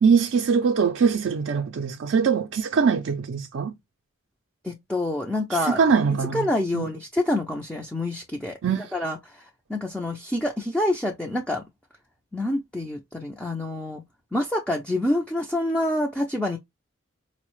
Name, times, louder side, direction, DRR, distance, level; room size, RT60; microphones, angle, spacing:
voice 1, 0.0-3.7 5.5-6.5 6.7-6.9 8.6-8.9, right 6 dB, 65° right, 0.4 m, -22 dB
voice 2, 4.6-5.8 6.1-8.6 8.9-11.6 12.3-14.0 14.3-16.6, left 1 dB, 5° left, 0.4 m, -27 dB
4.6 x 2.0 x 2.9 m
head